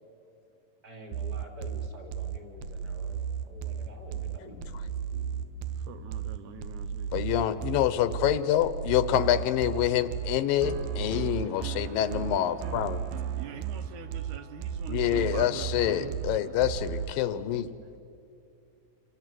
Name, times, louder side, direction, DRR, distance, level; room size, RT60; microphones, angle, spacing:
voice 1, 0.8-4.7, equal, 30° right, 2 dB, 3.1 m, -48 dB
sound 1, 1.1-17.1, right 8 dB, 90° right, 1.3 m, -35 dB
voice 2, 5.8-7.1 13.4-16.6, right 8 dB, 70° right, 9 dB, 2.1 m, -44 dB
voice 3, 7.1-13.0 14.9-17.7, left 11 dB, 85° left, 13 dB, 2.6 m, -26 dB
27.5 x 27.5 x 7.7 m, 2.7 s
omnidirectional pair, 3.9 m